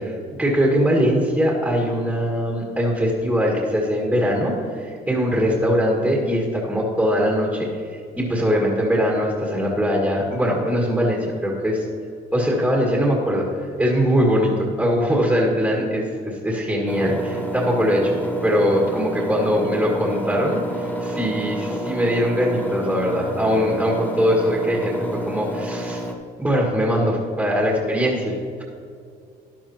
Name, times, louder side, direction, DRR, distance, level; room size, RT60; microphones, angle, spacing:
voice 1, 0.0-7.7 8.2-11.9 12.3-13.5 13.8-18.1 18.4-26.0 26.4-28.6, equal, 5° right, -3 dB, 1.9 m, -21 dB
Engine, 16.9-26.1, right 1 dB, 10° left, 0.9 m, -29 dB
13.0 x 10.5 x 2.9 m, 2.3 s
cardioid pair, 110°, 17 cm